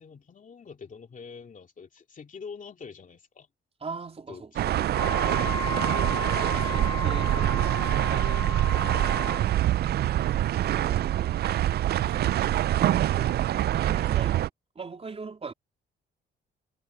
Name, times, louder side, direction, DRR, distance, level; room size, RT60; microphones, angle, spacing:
voice 1, 0.0-3.5 4.3-5.2 8.9-9.7, left 5 dB, 40° left, 2.8 m, -45 dB
voice 2, 3.8-4.6 6.5-8.8 9.9-11.3 11.9-13.4 13.7-14.4 14.8-15.5, right 4 dB, 30° right, 3.7 m, -42 dB
sound 1, 4.6-14.5, right 13 dB, 55° right, 0.4 m, -25 dB
Wind instrument woodwind instrument, 4.9-9.4, left 4 dB, 20° left, 1.3 m, -34 dB
cardioid pair, 90°, 20 cm